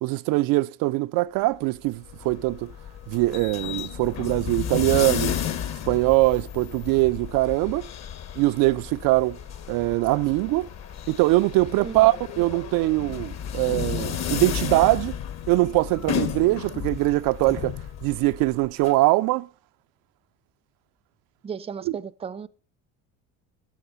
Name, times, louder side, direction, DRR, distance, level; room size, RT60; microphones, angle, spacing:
voice 1, 0.0-2.7 3.1-5.4 5.9-7.9 8.4-9.4 9.7-10.7 11.1-15.2 15.5-17.7 18.0-19.5 21.9-22.0, right 20 dB, 70° right, 0.5 m, -22 dB
sound 1, 1.9-18.9, left 9 dB, 45° left, 1.3 m, -33 dB
voice 2, 21.4-22.5, right 7 dB, 15° right, 0.5 m, -35 dB
13.5 x 6.8 x 8.2 m
cardioid pair, 120°, 36 cm